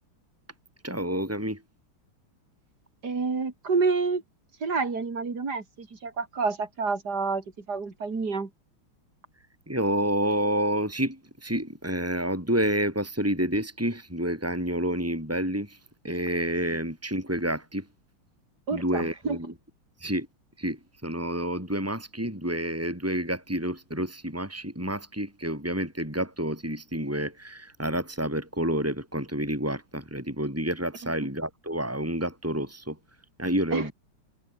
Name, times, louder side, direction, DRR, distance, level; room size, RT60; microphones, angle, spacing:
voice 1, 0.8-1.6 9.7-15.8 16.0-17.8 18.7-19.5 20.0-20.3 20.6-33.0 33.4-33.9, right 1 dB, 5° right, 6.6 m, -29 dB
voice 2, 3.0-4.2 4.6-8.5 18.7-19.4 33.7-33.9, right 4 dB, 50° right, 3.7 m, -28 dB
omnidirectional pair, 2.3 m